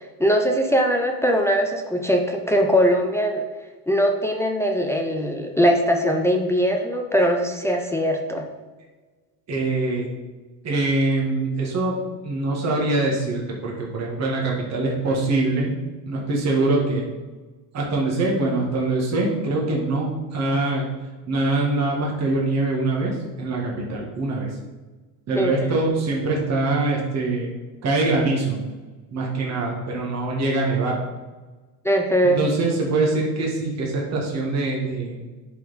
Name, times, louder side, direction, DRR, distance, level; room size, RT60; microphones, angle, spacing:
voice 1, 0.0-3.5 3.9-8.5 25.3-25.5 31.8-32.4, equal, 5° left, 2 dB, 0.5 m, -21 dB
voice 2, 9.5-10.1 10.6-12.0 12.2-15.7 16.0-17.0 17.7-20.8 21.3-24.5 25.3-27.5 27.8-28.6 29.1-31.0 32.2-35.2, right 2 dB, 35° right, -3 dB, 1.8 m, -23 dB
10.0 x 4.3 x 4.2 m, 1.3 s
cardioid pair, 125°, 47 cm